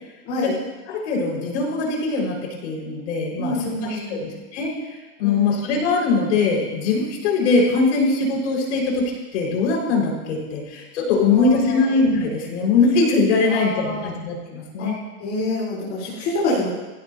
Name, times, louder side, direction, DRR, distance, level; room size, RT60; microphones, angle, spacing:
voice 1, 0.2-0.6 3.4-4.2 5.2-5.6 11.2-11.9 13.5-14.1 14.8-14.9 15.2-16.7, left 2 dB, 30° left, -9 dB, 4.0 m, -26 dB
voice 2, 0.9-4.7 5.2-15.0, left 4 dB, 50° left, -1 dB, 5.2 m, -21 dB
24.0 x 16.0 x 2.8 m, 1.2 s
supercardioid pair, 175°, 43 cm